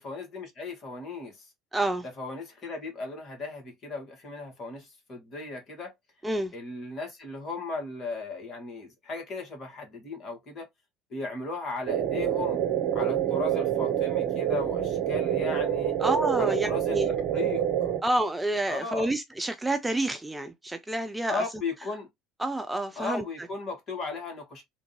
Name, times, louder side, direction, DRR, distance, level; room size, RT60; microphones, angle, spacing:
voice 1, 0.0-1.5 2.2-5.9 6.5-10.7 11.1-12.6 12.9-15.9 16.4-17.9 18.7-19.1 21.3-22.1 23.0-24.6, left 3 dB, 40° left, 1.7 m, -36 dB
voice 2, 1.7-2.0 6.2-6.5 16.0-17.1 18.0-21.4 22.4-23.2, right 1 dB, 10° right, 0.4 m, -28 dB
sound 1, 11.9-18.0, right 10 dB, 50° right, 0.7 m, -27 dB
3.3 x 2.5 x 2.9 m
figure-of-eight pair, 60°, 0 cm